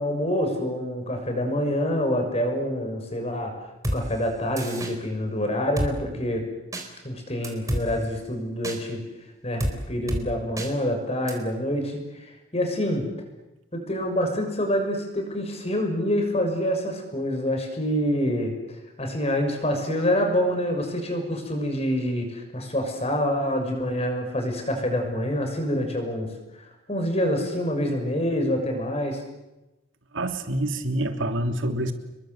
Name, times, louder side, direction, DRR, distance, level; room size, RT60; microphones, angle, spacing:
voice 1, 0.0-3.5 3.9-6.4 7.0-9.0 9.4-13.1 13.7-26.3 26.5-29.2, equal, 30° left, 4 dB, 6.6 m, -26 dB
Drum kit, 3.8-4.0 4.6-4.9 5.8-5.9 6.7-6.9 7.4-7.8 8.6-8.8 9.6-9.8 10.1-10.2 10.6-10.7 11.3-11.4, equal, 15° right, 4.2 m, -27 dB
voice 2, 30.1-31.9, right 1 dB, 75° right, 6 dB, 3.2 m, -26 dB
29.5 x 22.5 x 8.1 m, 1.0 s
head